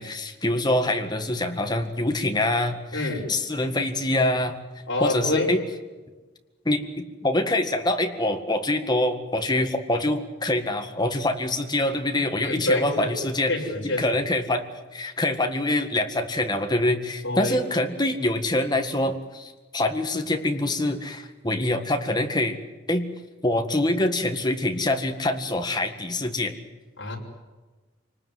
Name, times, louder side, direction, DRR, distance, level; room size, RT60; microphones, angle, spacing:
voice 1, 0.0-4.6 5.0-5.6 6.7-13.5 14.0-14.6 14.9-22.6 22.9-23.1 23.4-26.5, left 1 dB, 20° left, 6 dB, 1.9 m, -25 dB
voice 2, 2.9-3.3 4.9-5.5 12.4-13.1 13.5-14.2 17.2-17.6 27.0-27.2, left 2 dB, 65° left, 0 dB, 5.4 m, -27 dB
27.0 x 19.5 x 9.7 m, 1.2 s
head